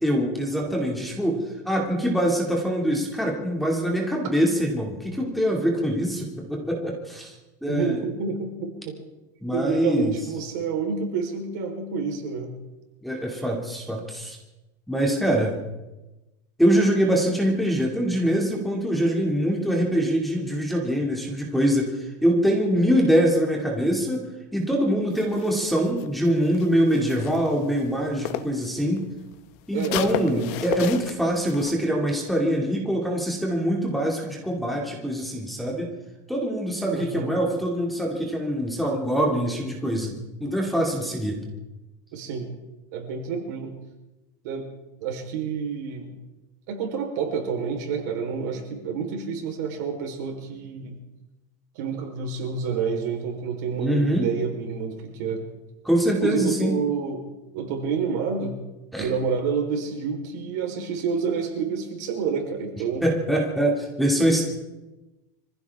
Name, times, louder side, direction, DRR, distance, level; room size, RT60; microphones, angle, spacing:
voice 1, 0.0-7.3 7.6-8.0 9.4-10.2 13.0-14.4 14.9-15.5 16.6-24.3 24.5-29.0 29.7-35.9 36.3-41.4 53.8-54.3 55.8-56.7 58.9-59.1 63.0-64.4, equal, ahead, 0 dB, 2.5 m, -24 dB
voice 2, 7.7-8.9 9.5-12.5 29.7-30.6 36.9-37.3 42.1-42.5 42.9-43.7 44.4-44.7 45.0-46.1 46.7-51.0 51.7-55.4 56.2-57.2 57.5-58.6 59.0-63.0, right 6 dB, 65° right, 2 dB, 4.2 m, -28 dB
sound 1, 25.1-28.7 29.0-31.7, left 12 dB, 55° left, 1.0 m, -35 dB
25.5 x 15.5 x 3.6 m, 1.0 s
supercardioid pair, 155°, 10 cm